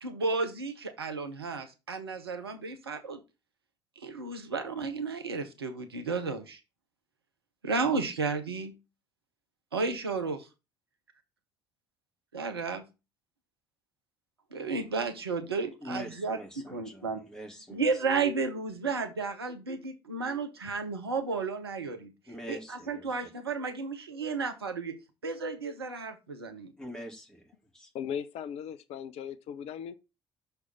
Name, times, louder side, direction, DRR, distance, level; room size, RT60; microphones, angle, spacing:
voice 1, 0.0-3.2 4.0-6.6 7.6-8.7 9.7-10.5 12.3-12.8 14.5-16.4 16.7-17.2 17.7-22.1 22.5-24.9 25.2-26.7, right 4 dB, 85° right, 0.8 m, -33 dB
voice 2, 15.8-18.0 22.3-23.3 26.8-27.9, equal, 5° left, 2.4 m, -44 dB
voice 3, 27.9-29.9, left 8 dB, 55° left, 0.5 m, -37 dB
6.1 x 3.4 x 5.6 m
figure-of-eight pair, 50°, 13 cm